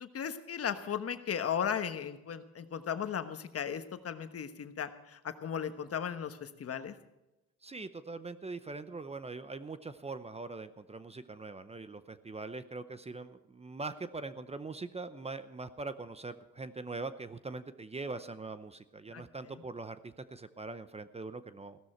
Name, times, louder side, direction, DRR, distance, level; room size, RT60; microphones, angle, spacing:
voice 1, 0.0-6.9 19.1-19.6, left 8 dB, 50° left, 9 dB, 1.2 m, -36 dB
voice 2, 7.6-21.8, right 3 dB, 20° right, 12 dB, 0.7 m, -42 dB
15.5 x 12.5 x 4.4 m, 0.96 s
cardioid pair, 90°, 30 cm